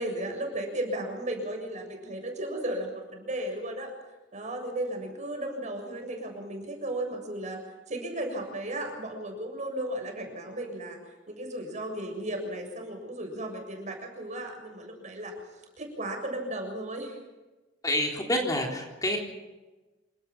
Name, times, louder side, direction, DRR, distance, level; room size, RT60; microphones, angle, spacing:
voice 1, 0.0-3.9 4.3-7.6 7.9-11.0 11.3-17.2, right 1 dB, 40° right, 3 dB, 7.0 m, -35 dB
voice 2, 17.8-19.2, left 1 dB, 20° left, 0 dB, 3.7 m, -28 dB
27.5 x 18.5 x 6.1 m, 1.1 s
head